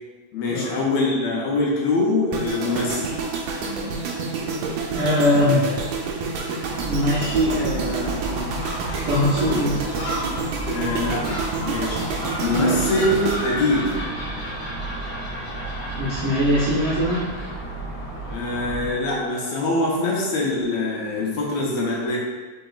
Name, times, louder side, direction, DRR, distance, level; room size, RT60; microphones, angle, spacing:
voice 1, 0.3-3.1 10.7-11.2 11.6-12.0 12.4-14.1 18.3-22.2, left 2 dB, 75° left, -4 dB, 1.8 m, -23 dB
sound 1, 2.3-14.5 14.8-15.1, right 4 dB, 90° right, 2.1 m, -29 dB
voice 2, 4.9-5.7 6.8-8.6 9.0-9.8 12.5-12.8 16.0-17.3, equal, 70° right, -8 dB, 1.4 m, -22 dB
Gull seagull, 6.6-19.0, right 1 dB, 40° left, 0.9 m, -31 dB
5.6 x 3.8 x 2.3 m, 1.3 s
omnidirectional pair, 3.3 m